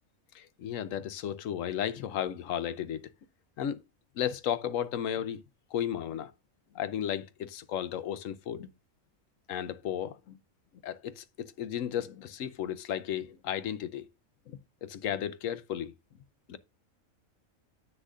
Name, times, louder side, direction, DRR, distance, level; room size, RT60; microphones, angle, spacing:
voice 1, 0.3-3.1 3.6-3.8 4.2-5.4 5.7-6.3 6.7-8.7 9.5-10.4 10.8-14.1 14.5-15.9 16.5-16.6, left 10 dB, 70° left, 1.0 m, -34 dB
10.0 x 7.4 x 2.4 m
omnidirectional pair, 1.4 m